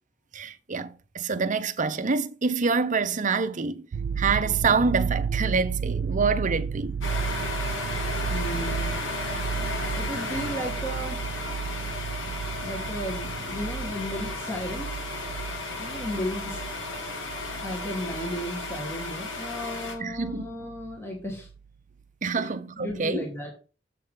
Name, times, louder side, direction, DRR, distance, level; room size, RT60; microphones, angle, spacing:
voice 1, 0.3-3.9 4.2-7.0 20.0-20.4 22.2-23.2, right 4 dB, 40° right, 0.8 m, -26 dB
sound 1, 3.9-21.0 21.3-21.6, right 6 dB, 65° right, 0.4 m, -33 dB
sound 2, 7.0-19.9, left 3 dB, 80° left, 2.1 m, -34 dB
voice 2, 8.3-9.0 9.9-11.2 12.6-14.9 15.8-16.6 17.3-21.5 22.4-23.5, equal, 15° left, 1.7 m, -34 dB
7.6 x 7.2 x 3.8 m
head